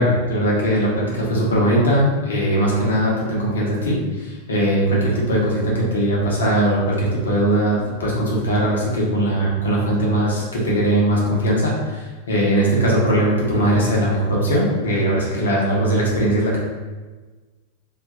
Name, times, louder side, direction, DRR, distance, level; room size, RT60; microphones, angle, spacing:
voice 1, 0.0-16.6, right 1 dB, 65° left, -4 dB, 0.9 m, -20 dB
2.6 x 2.4 x 3.6 m, 1.3 s
figure-of-eight pair, 90°, 0 cm